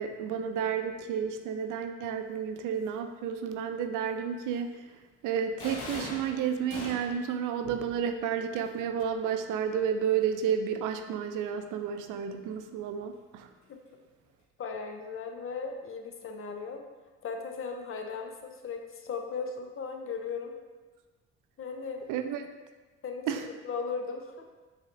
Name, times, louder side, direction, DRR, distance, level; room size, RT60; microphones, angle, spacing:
voice 1, 0.0-4.9 5.2-13.5 22.1-22.5 23.3-23.4, right 7 dB, 65° right, 8 dB, 0.5 m, -31 dB
sound 1, 5.6-7.3, left 2 dB, 70° left, 1.0 m, -40 dB
voice 2, 14.6-16.8 17.2-20.5 21.6-22.0 23.0-24.4, left 5 dB, 40° left, 4 dB, 0.6 m, -37 dB
4.9 x 3.3 x 2.5 m, 1.3 s
hypercardioid pair, 55°, 33 cm